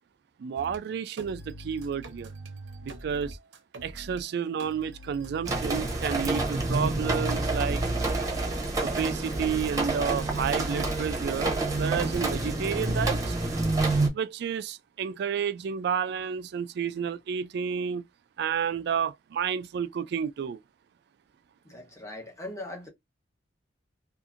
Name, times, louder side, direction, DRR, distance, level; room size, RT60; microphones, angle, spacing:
voice 1, 0.4-2.3 2.8-3.4 3.8-7.8 8.8-13.4 14.1-18.0 18.4-20.6, right 7 dB, 60° right, 0.3 m, -31 dB
sound 1, 0.6-0.8 1.2-4.2 4.6-6.0, right 1 dB, 85° right, 0.7 m, -44 dB
sound 2, 5.4-14.1, right 2 dB, 20° right, 0.8 m, -28 dB
voice 2, 21.6-22.9, left 1 dB, 15° left, 1.0 m, -40 dB
2.8 x 2.5 x 2.4 m
head